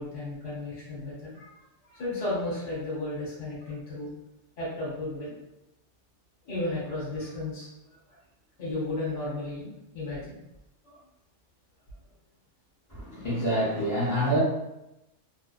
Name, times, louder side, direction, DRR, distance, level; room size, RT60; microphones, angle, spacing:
voice 1, 0.0-1.5 1.8-4.1 4.6-5.3 6.5-7.7 8.6-10.4 10.8-11.0, left 2 dB, 70° left, -7 dB, 1.3 m, -34 dB
voice 2, 12.9-14.4, equal, 20° left, -6 dB, 0.6 m, -27 dB
2.6 x 2.1 x 2.3 m, 0.90 s
omnidirectional pair, 1.3 m